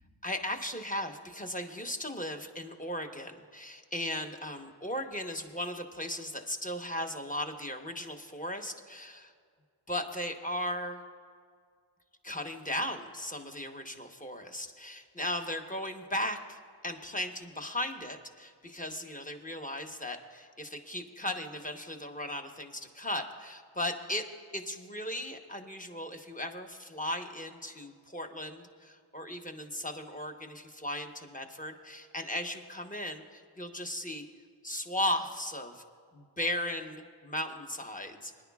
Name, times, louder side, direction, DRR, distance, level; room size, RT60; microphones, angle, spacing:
voice 1, 0.2-9.3 9.9-11.0 12.2-24.3 24.5-34.3 34.6-35.8 36.1-38.3, left 1 dB, 15° left, 4 dB, 1.0 m, -37 dB
23.0 x 10.5 x 2.4 m, 2.1 s
wide cardioid pair, 65°, 47 cm